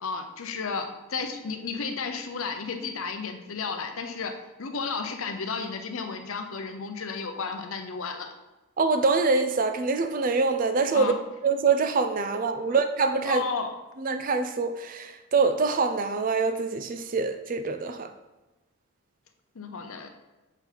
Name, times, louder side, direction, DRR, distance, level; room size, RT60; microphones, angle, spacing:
voice 1, 0.0-4.3 4.6-8.3 10.9-11.2 12.6-12.8 13.3-13.7 19.6-20.1, left 4 dB, 65° left, 5 dB, 0.7 m, -33 dB
voice 2, 8.8-11.1 11.4-13.4 14.0-18.1, right 4 dB, 35° right, 8 dB, 0.4 m, -25 dB
6.9 x 3.9 x 4.5 m, 1.1 s
head